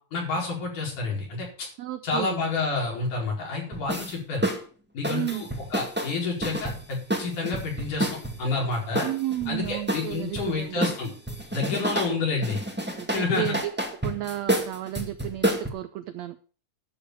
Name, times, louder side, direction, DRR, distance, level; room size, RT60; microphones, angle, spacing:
voice 1, 0.1-1.7 2.0-4.4 4.9-8.1 8.4-9.1 9.5-11.1 11.5-12.6 13.1-13.4, left 4 dB, 65° left, -2 dB, 6.1 m, -29 dB
voice 2, 1.8-2.4 5.1-5.4 9.0-10.8 11.9-12.2 12.4-12.5 13.0-13.7 14.0-16.4, right 14 dB, 85° right, 11 dB, 1.5 m, -32 dB
sound 1, 3.7-4.1 4.4-4.6 5.0-8.5 9.0-10.5 10.8-12.1 12.4-15.7, right 1 dB, 10° right, 0.6 m, -29 dB
12.0 x 7.2 x 6.4 m, 0.41 s
omnidirectional pair, 3.9 m